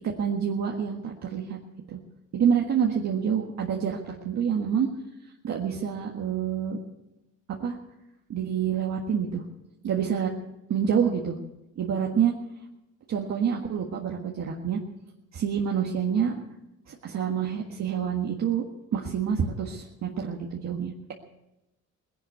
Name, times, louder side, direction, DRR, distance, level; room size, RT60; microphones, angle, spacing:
voice 1, 0.2-1.6 1.9-2.0 2.3-4.9 5.4-6.8 7.6-7.8 8.3-9.4 9.8-10.3 10.7-11.4 11.8-12.3 13.1-14.8 15.3-16.4 16.9-18.6 18.9-21.1, right 7 dB, 60° right, -1 dB, 1.7 m, -27 dB
18.5 x 11.0 x 6.9 m, 0.93 s
cardioid pair, 90°, 30 cm